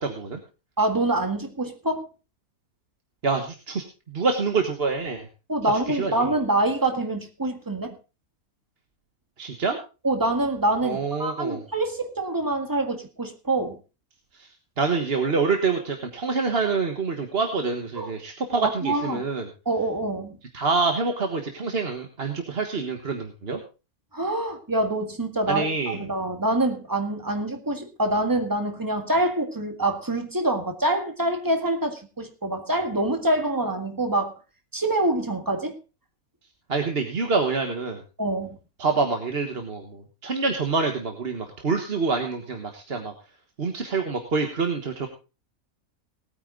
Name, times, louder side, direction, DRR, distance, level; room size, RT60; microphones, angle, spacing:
voice 1, 0.0-0.4 3.2-5.3 5.9-6.3 9.4-9.8 10.8-11.6 14.4-14.5 14.8-19.5 20.5-23.6 25.5-26.0 36.7-38.0 38.8-43.1 43.6-45.1, right 4 dB, 40° right, 4 dB, 1.5 m, -26 dB
voice 2, 0.8-2.1 5.5-7.9 10.0-13.8 17.9-18.1 18.6-19.2 19.6-20.4 24.1-34.3 34.7-35.7 38.2-38.6, right 2 dB, 15° right, 5 dB, 1.7 m, -25 dB
19.0 x 9.2 x 3.8 m, 0.31 s
omnidirectional pair, 1.6 m